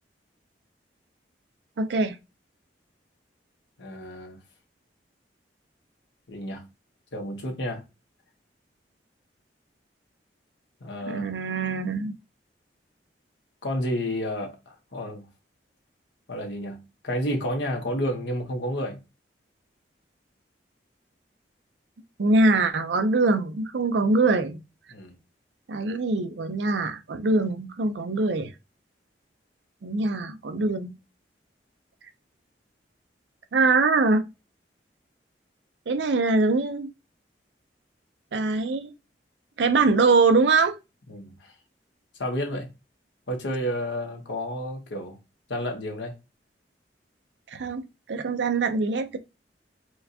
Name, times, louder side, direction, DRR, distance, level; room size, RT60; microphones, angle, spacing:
voice 1, 1.8-2.2 11.1-12.1 22.2-24.6 25.7-28.5 29.8-30.9 33.5-34.2 35.9-36.9 38.3-38.9 39.6-40.8 47.5-47.8 48.1-49.2, right 3 dB, 75° right, 0.5 m, -23 dB
voice 2, 3.8-4.4 6.3-6.6 7.1-7.8 10.8-11.3 13.6-15.3 16.3-19.0 24.9-25.2 41.1-41.5 42.2-42.7 43.3-45.2 45.5-46.2, equal, 90° left, 1.1 m, -31 dB
4.4 x 2.3 x 2.7 m
head